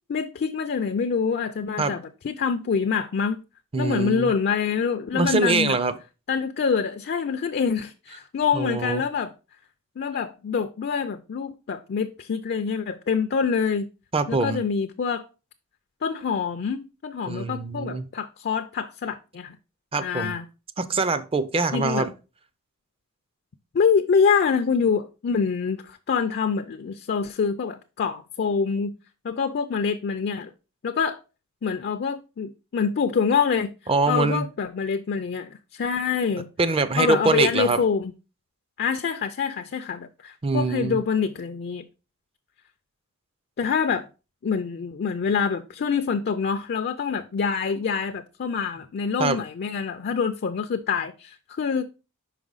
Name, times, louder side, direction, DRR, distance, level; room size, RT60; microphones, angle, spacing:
voice 1, 0.1-3.4 3.8-5.8 6.3-9.3 10.0-13.9 14.3-15.2 16.0-19.6 20.0-20.5 21.7-22.1 23.7-28.9 29.2-30.5 30.8-31.2 31.6-33.7 34.1-36.5 37.0-38.1 38.8-41.8 43.6-44.1 44.4-51.8, left 6 dB, 45° left, 0.4 m, -25 dB
voice 2, 3.7-4.3 5.1-6.0 8.5-9.0 14.1-14.6 17.3-18.1 19.9-20.3 20.8-22.1 33.9-34.4 36.6-37.8 40.4-41.0 49.2-49.4, right 3 dB, 25° right, 0.5 m, -24 dB
5.5 x 4.9 x 3.9 m
head